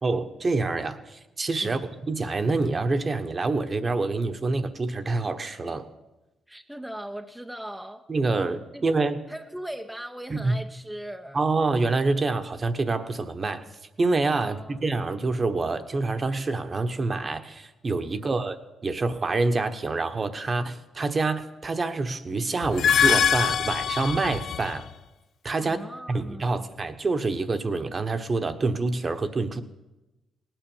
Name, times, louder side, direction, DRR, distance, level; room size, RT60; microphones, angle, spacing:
voice 1, 0.0-1.8 2.1-5.9 8.1-9.2 10.3-10.5 11.3-13.6 14.0-18.6 18.8-24.8 25.4-25.8 26.1-29.6, right 3 dB, 35° right, 9 dB, 1.1 m, -26 dB
voice 2, 1.6-1.9 6.5-8.1 8.7-8.8 9.3-11.4 14.4-14.8 18.1-18.4 25.6-26.7, right 1 dB, 5° right, 4 dB, 0.7 m, -39 dB
sound 1, 22.6-24.9, left 8 dB, 60° left, 0.4 m, -23 dB
18.0 x 9.1 x 7.2 m, 1.0 s
cardioid pair, 90°, 0 cm